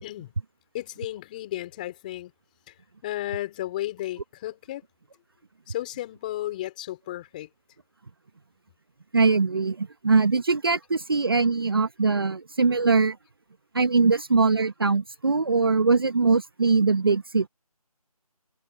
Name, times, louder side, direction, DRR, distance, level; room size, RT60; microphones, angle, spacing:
voice 1, 0.0-0.3 0.7-2.3 2.7-2.8 3.0-4.8 5.7-7.5, left 14 dB, 15° left, 4.5 m, -33 dB
voice 2, 9.1-13.2 13.7-17.5, right 4 dB, 40° right, 1.1 m, -22 dB
figure-of-eight pair, 170°, 19 cm